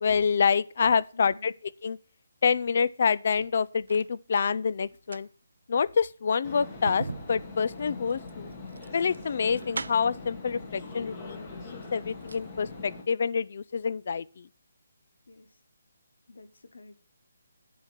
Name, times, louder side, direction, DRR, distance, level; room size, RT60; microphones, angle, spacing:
voice 1, 0.0-1.5 1.8-2.0 2.4-5.3 5.7-8.5 8.9-14.5, left 6 dB, 35° left, 0.3 m, -27 dB
voice 2, 1.1-1.6 15.3-15.6 16.3-17.0, left 3 dB, 80° left, 1.0 m, -51 dB
sound 1, 3.2-4.1 4.9-10.3 11.2-11.3 11.7-12.5 12.8-12.9, right 3 dB, 80° right, 0.3 m, -41 dB
sound 2, 6.4-13.0, left 3 dB, 15° left, 1.3 m, -42 dB
10.0 x 4.5 x 7.3 m
hypercardioid pair, 180°, 0 cm